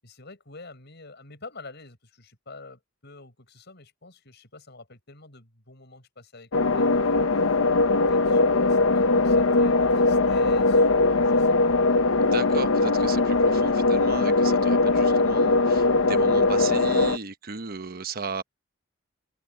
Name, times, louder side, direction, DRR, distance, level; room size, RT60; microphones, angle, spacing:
voice 1, 0.0-11.9, left 3 dB, 55° left, 6.7 m, -48 dB
sound 1, 6.5-17.2, left 3 dB, 75° left, 0.8 m, -21 dB
voice 2, 12.2-18.4, right 4 dB, 50° right, 1.1 m, -35 dB
head